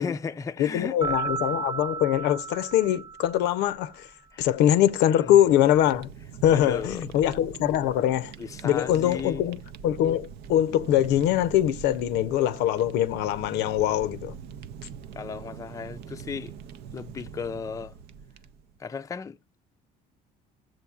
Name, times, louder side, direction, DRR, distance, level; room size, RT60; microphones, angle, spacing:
voice 1, 0.0-1.2 4.3-4.5 5.2-5.4 6.5-7.1 8.4-9.4 15.2-16.5 16.9-17.9 18.8-19.4, left 5 dB, 20° left, 0.4 m, -35 dB
voice 2, 0.6-4.1 4.4-6.1 6.4-8.3 8.6-14.3, left 11 dB, 90° left, 0.6 m, -23 dB
sound 1, 1.0-3.8, right 5 dB, 20° right, 0.8 m, -33 dB
Fire, 5.2-18.8, right 7 dB, 75° right, 0.5 m, -43 dB
14.0 x 7.6 x 2.3 m
cardioid pair, 110°, 17 cm